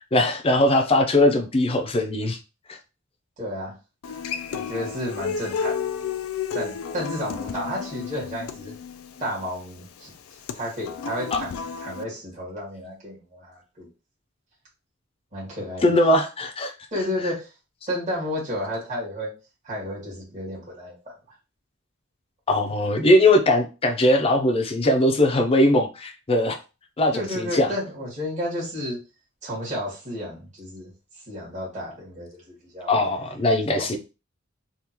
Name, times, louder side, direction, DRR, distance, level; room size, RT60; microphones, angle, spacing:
voice 1, 0.1-2.4 2.7-2.8 15.8-16.7 22.5-26.6 27.0-27.7 32.9-34.0, left 1 dB, 25° left, 0.5 m, -20 dB
voice 2, 3.4-3.8 4.5-6.0 6.5-8.7 9.2-10.1 10.5-13.9 15.3-15.9 16.9-17.5 17.9-19.3 19.6-21.1 27.1-29.0 29.4-30.9 31.3-32.9 33.8-33.9, left 1 dB, 35° right, 1.7 m, -32 dB
Human voice / Acoustic guitar, 4.0-12.0, left 6 dB, 80° left, 0.4 m, -32 dB
3.6 x 2.4 x 2.9 m
head